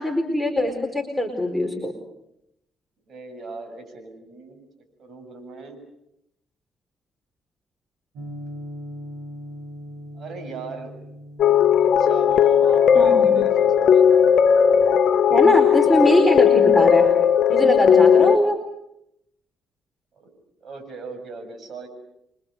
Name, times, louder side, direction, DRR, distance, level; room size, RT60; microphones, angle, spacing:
voice 1, 0.0-1.9 12.9-13.4 15.3-17.1 17.5-18.6, left 1 dB, ahead, 5 dB, 4.6 m, -21 dB
voice 2, 3.1-4.6 5.0-5.8 10.1-10.9 11.8-14.4 15.5-15.8 20.1-20.3 20.6-21.9, right 3 dB, 55° right, 7 dB, 7.4 m, -38 dB
sound 1, 8.2-15.0, equal, 90° right, 5.5 m, -41 dB
sound 2, 11.4-18.4, left 8 dB, 65° left, 0.9 m, -16 dB
29.5 x 24.5 x 6.9 m, 0.81 s
cardioid pair, 90°, 0 cm